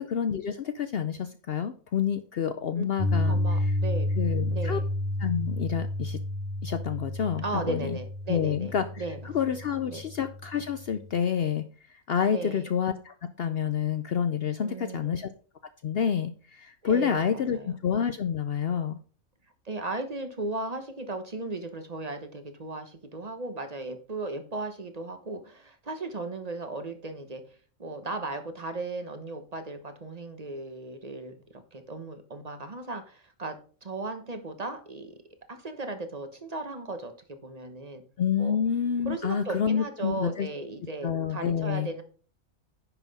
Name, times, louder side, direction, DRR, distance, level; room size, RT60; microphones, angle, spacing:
voice 1, 0.0-3.7 4.2-4.8 5.2-6.2 6.6-8.0 8.3-11.6 12.1-15.3 15.8-19.0 38.2-40.5 41.0-41.9, left 7 dB, 60° left, 10 dB, 0.7 m, -28 dB
Piano, 3.0-11.1, left 1 dB, ahead, 1.0 m, -30 dB
voice 2, 3.2-4.1 4.5-4.9 7.4-9.3 9.9-10.0 12.3-12.7 14.6-15.2 16.8-17.8 19.6-27.4 27.8-35.1 35.5-38.0 38.4-38.6 39.0-42.0, right 2 dB, 30° right, 8 dB, 1.1 m, -36 dB
10.0 x 5.9 x 4.1 m, 0.40 s
omnidirectional pair, 1.4 m